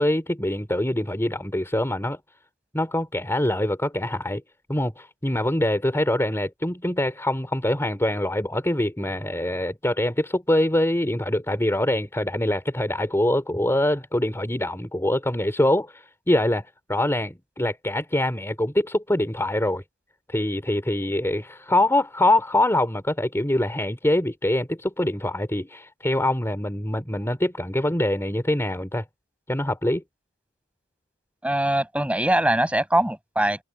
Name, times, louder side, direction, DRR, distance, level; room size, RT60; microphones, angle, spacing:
voice 1, 0.0-2.2 2.7-4.4 4.7-19.8 20.3-29.0 29.5-30.0, left 1 dB, 15° left, 3.0 m, -24 dB
voice 2, 31.4-33.6, right 1 dB, 5° right, 7.9 m, -22 dB
head